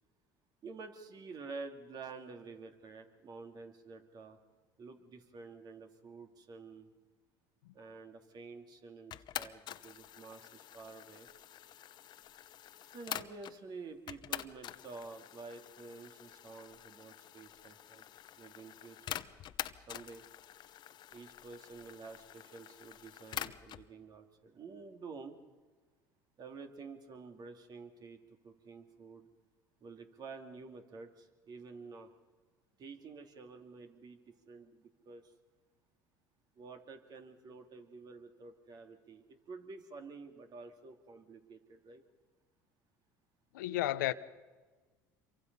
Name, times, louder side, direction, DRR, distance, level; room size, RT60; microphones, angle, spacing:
voice 1, 0.6-4.4 4.8-6.9 7.7-11.3 12.9-18.0 18.4-19.2 19.9-20.3 21.1-25.4 26.4-29.3 29.8-32.1 32.8-35.3 36.6-42.0, right 4 dB, 45° right, 2.9 m, -50 dB
sound 1, 9.1-13.6 14.1-23.9, left 11 dB, 50° left, 0.9 m, -46 dB
voice 2, 43.5-44.1, left 15 dB, 85° left, 0.8 m, -32 dB
27.0 x 24.0 x 5.6 m
supercardioid pair, 85°, 10 cm